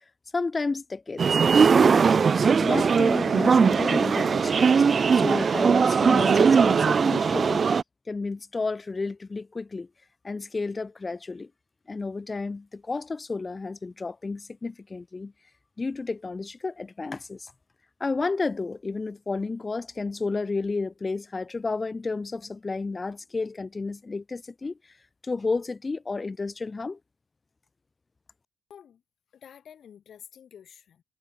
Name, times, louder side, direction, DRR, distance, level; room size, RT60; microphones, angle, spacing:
voice 1, 0.3-2.1 2.6-4.8 5.1-7.6 8.1-9.9 10.2-11.5 11.9-15.3 15.8-17.5 18.0-24.7 25.2-27.0, left 3 dB, 25° left, 0.6 m, -32 dB
sound 1, 1.2-7.8, right 5 dB, 40° right, 0.4 m, -20 dB
voice 2, 28.7-29.0 29.3-31.0, left 8 dB, 60° left, 3.7 m, -49 dB
cardioid pair, 90°, 0 cm